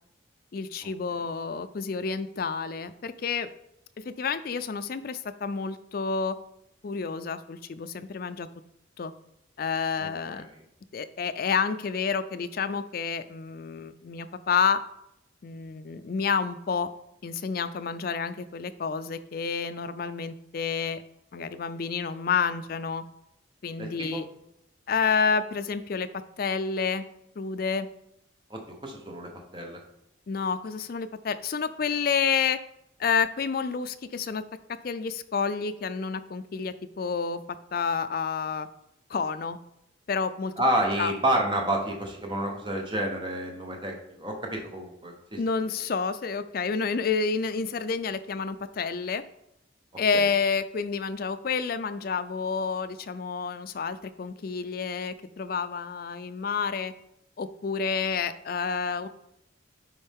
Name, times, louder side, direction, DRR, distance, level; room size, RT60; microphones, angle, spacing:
voice 1, 0.5-3.5 4.0-6.4 6.8-8.5 9.0-9.1 9.6-10.5 10.9-14.8 15.4-16.9 17.2-21.0 21.3-23.0 23.6-24.3 24.9-26.1 26.4-27.0 27.4-27.9 30.3-32.6 33.0-38.7 39.1-39.6 40.1-40.5 41.0-41.1 45.4-49.2 50.0-56.9 57.4-59.1, left 5 dB, 45° left, 11 dB, 0.4 m, -29 dB
voice 2, 10.0-10.5 23.8-24.2 28.5-29.8 40.6-45.4 50.1-50.3, right 1 dB, 25° right, 1 dB, 1.0 m, -30 dB
9.8 x 4.3 x 3.6 m, 0.81 s
head